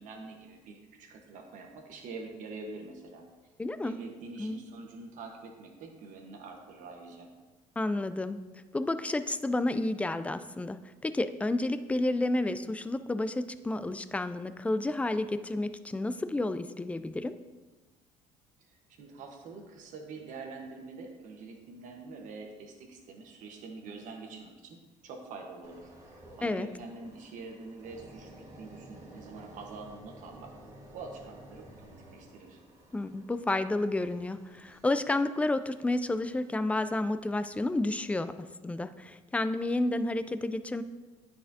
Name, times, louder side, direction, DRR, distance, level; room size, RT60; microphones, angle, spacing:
voice 1, 0.0-3.3 3.8-7.3 18.6-30.5 30.9-32.6, right 3 dB, 65° right, 2 dB, 1.2 m, -45 dB
voice 2, 3.6-4.0 4.4-4.6 7.8-8.4 8.7-17.4 26.4-26.7 32.9-38.3 38.6-40.8, left 2 dB, 10° left, 12 dB, 0.3 m, -30 dB
sound 1, 25.6-36.6 37.1-37.3, right 1 dB, 20° right, 1.5 m, -53 dB
9.9 x 4.2 x 2.7 m, 1.3 s
cardioid pair, 100°, 14 cm